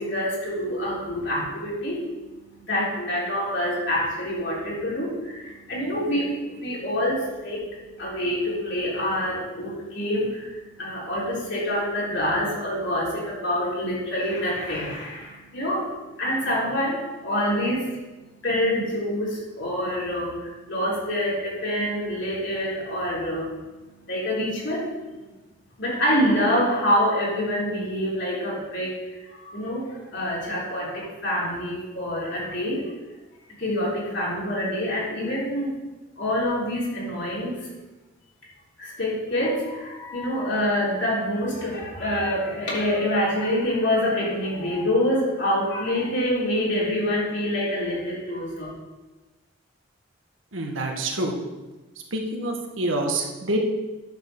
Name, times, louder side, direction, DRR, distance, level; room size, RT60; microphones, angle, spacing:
voice 1, 0.0-18.0 18.4-23.6 24.0-25.0 25.8-32.9 33.6-35.8 36.2-37.7 38.8-48.7, equal, 65° left, -5 dB, 3.7 m, -26 dB
voice 2, 50.5-51.4 52.1-53.6, right 1 dB, 80° right, 1 dB, 1.7 m, -27 dB
10.0 x 5.6 x 6.7 m, 1.2 s
head